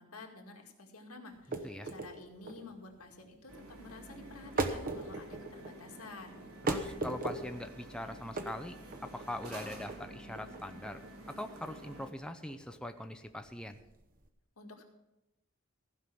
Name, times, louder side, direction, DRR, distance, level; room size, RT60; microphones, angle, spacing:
voice 1, 0.0-6.4 14.6-14.8, left 2 dB, 90° left, 1 dB, 2.2 m, -50 dB
sound 1, 1.3-14.3, right 3 dB, 40° right, 1.0 m, -40 dB
sound 2, 3.5-12.1, right 1 dB, 80° right, 3.0 m, -50 dB
voice 2, 6.6-8.8 9.0-11.0 11.4-13.8, left 1 dB, 5° left, 7 dB, 0.5 m, -42 dB
15.5 x 5.7 x 7.6 m, 0.94 s
head